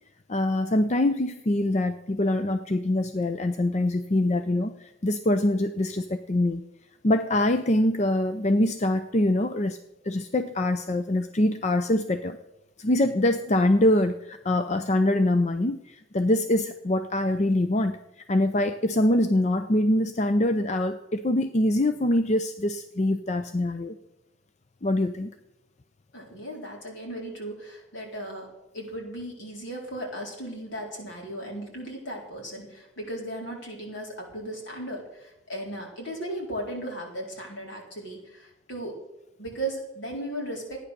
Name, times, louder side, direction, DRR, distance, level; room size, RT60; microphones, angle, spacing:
voice 1, 0.3-6.6 7.0-9.8 10.0-12.4 12.8-18.0 18.3-24.0 24.8-25.3, left 1 dB, 35° left, 8 dB, 0.5 m, -24 dB
voice 2, 26.1-28.5 28.7-39.0 39.4-40.9, right 1 dB, 70° left, -1 dB, 4.2 m, -36 dB
14.5 x 9.8 x 6.7 m, 0.88 s
head